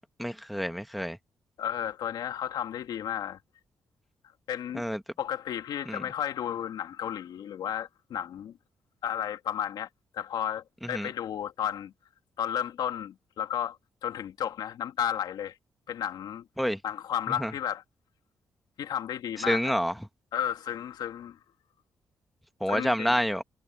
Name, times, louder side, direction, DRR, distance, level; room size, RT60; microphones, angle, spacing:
voice 1, 0.2-1.2 4.7-5.0 5.9-6.0 10.8-11.1 16.6-16.8 17.4-17.5 19.5-19.9 22.6-23.4, equal, ahead, 1.7 m, -28 dB
voice 2, 1.6-3.4 4.5-4.8 5.2-8.6 9.0-9.9 10.1-11.9 12.4-13.8 14.0-15.5 15.9-16.5 16.8-17.8 18.8-19.7 20.3-21.4 22.7-23.2, left 10 dB, 75° left, 2.6 m, -33 dB
supercardioid pair, 55°, 7 cm